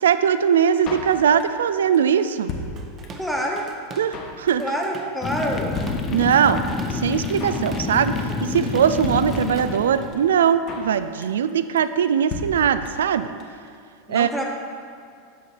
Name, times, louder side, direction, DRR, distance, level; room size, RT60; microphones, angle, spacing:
voice 1, 0.0-2.5 4.0-4.6 6.1-6.6 6.9-8.2 8.4-13.3 14.1-14.3, right 8 dB, 75° right, 12 dB, 0.3 m, -20 dB
Drum kit, 0.9-1.7 1.9-2.0 2.2-3.3 3.6-3.7 3.9-4.4 4.7-5.0 5.2-5.3 5.5-5.6 5.8-6.6 6.9-7.0 7.1-7.7 7.9-8.2 8.5-8.6 8.8-8.9 9.0-9.9 10.1-10.2 10.4-11.0 11.2-11.5 11.8-11.9 12.0-12.1 12.3-13.1 13.4-13.5 13.7-13.8, left 3 dB, 45° left, 1.2 m, -33 dB
Drum kit / Drum, 2.8-4.1 4.5-10.1, right 4 dB, 30° right, 0.8 m, -41 dB
voice 2, 3.2-3.7 4.6-5.8 14.1-14.5, equal, ahead, -1 dB, 1.3 m, -27 dB
sound 1, 5.2-10.3, left 4 dB, 30° left, 0.7 m, -28 dB
8.2 x 6.3 x 4.4 m, 2.2 s
hypercardioid pair, 90°, 0 cm